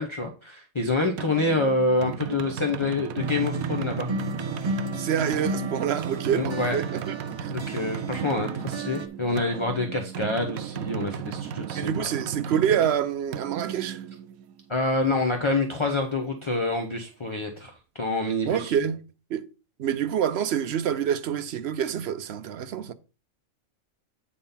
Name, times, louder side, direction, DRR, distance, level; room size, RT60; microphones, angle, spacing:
voice 1, 0.0-4.1 6.3-6.8 7.5-12.1 14.7-18.7, left 2 dB, 25° left, 0.8 m, -27 dB
sound 1, 1.2-14.7, right 8 dB, 85° right, 1.1 m, -35 dB
sound 2, 3.2-9.1, right 2 dB, 40° right, 0.4 m, -33 dB
voice 2, 5.0-7.5 11.7-14.0 18.5-19.0 19.3-19.4 19.8-22.9, right 9 dB, 60° right, 0.8 m, -27 dB
8.6 x 3.8 x 5.6 m
omnidirectional pair, 1.4 m